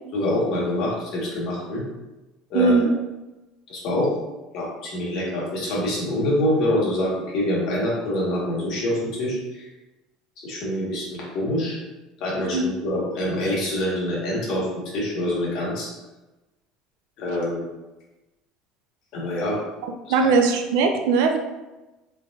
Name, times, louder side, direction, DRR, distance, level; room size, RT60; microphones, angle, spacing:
voice 1, 0.1-1.8 2.5-2.7 3.7-4.1 4.5-9.7 10.4-11.8 12.2-15.9 17.2-17.6 19.1-19.6 20.1-20.3, left 1 dB, 55° left, -5 dB, 1.4 m, -25 dB
voice 2, 2.5-2.9 12.5-12.6 20.1-21.4, right 4 dB, 80° right, 5 dB, 0.4 m, -19 dB
3.7 x 3.3 x 2.5 m, 1.1 s
cardioid pair, 145°, 0 cm